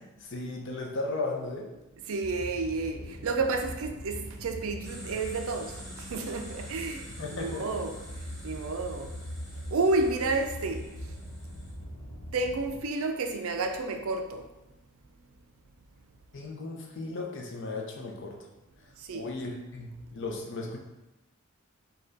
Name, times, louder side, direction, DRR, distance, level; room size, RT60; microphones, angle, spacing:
voice 1, 0.0-1.7 7.2-7.7 16.3-18.5 19.1-20.8, left 2 dB, 60° left, 0.6 m, -36 dB
voice 2, 2.1-8.0 8.4-9.1 9.7-11.1 12.3-14.5 19.0-19.3, right 3 dB, 70° right, 0.4 m, -31 dB
sound 1, 2.2-12.8, equal, 80° left, 1.0 m, -42 dB
sound 2, 4.8-11.7, equal, 5° left, 0.9 m, -49 dB
5.3 x 2.3 x 3.9 m
head